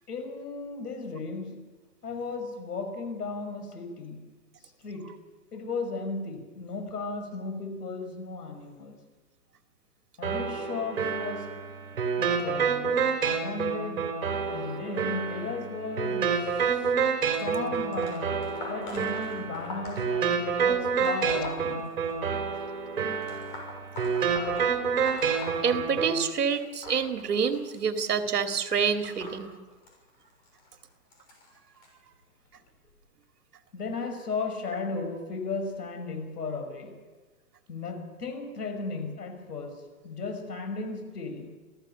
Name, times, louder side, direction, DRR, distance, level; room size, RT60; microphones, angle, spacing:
voice 1, 0.1-1.7 2.0-4.3 4.8-5.2 5.5-9.0 10.2-11.6 12.2-14.2 14.5-16.9 17.4-18.3 18.7-21.9 29.5-29.6 33.7-37.0 37.7-41.5, left 4 dB, 90° left, 7 dB, 5.9 m, -35 dB
sound 1, 10.2-26.2, right 6 dB, 60° right, 4.5 m, -28 dB
sound 2, 17.3-22.5 23.2-26.2 26.5-31.9 32.7-32.9 34.0-34.1 34.9-35.0 35.7-35.8, left 1 dB, 30° left, 6.8 m, -43 dB
voice 2, 25.6-29.5, right 6 dB, 80° right, 6 dB, 2.4 m, -27 dB
27.0 x 15.5 x 7.0 m, 1.3 s
hypercardioid pair, 170°, 46 cm